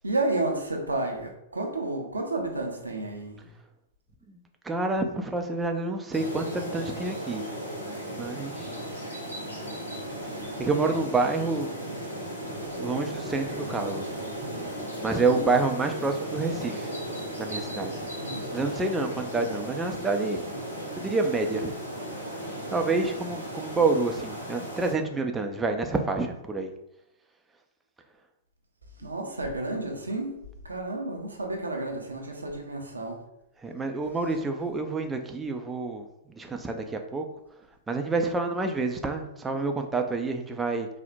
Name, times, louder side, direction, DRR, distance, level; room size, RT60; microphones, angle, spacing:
voice 1, 0.0-3.5 15.3-15.5 18.2-18.5 19.4-19.5 29.0-33.2, right 2 dB, 85° right, 2 dB, 0.6 m, -31 dB
voice 2, 4.6-7.5 8.0-8.7 10.6-11.8 12.8-14.1 15.0-16.9 17.4-17.9 18.5-20.4 21.0-21.7 22.7-26.7 33.6-37.3 37.9-40.9, right 3 dB, 10° right, 4 dB, 0.4 m, -28 dB
sound 1, 6.1-24.9, equal, 90° left, 0.8 m, -36 dB
4.1 x 2.1 x 2.5 m, 0.82 s
figure-of-eight pair, 105°, 0 cm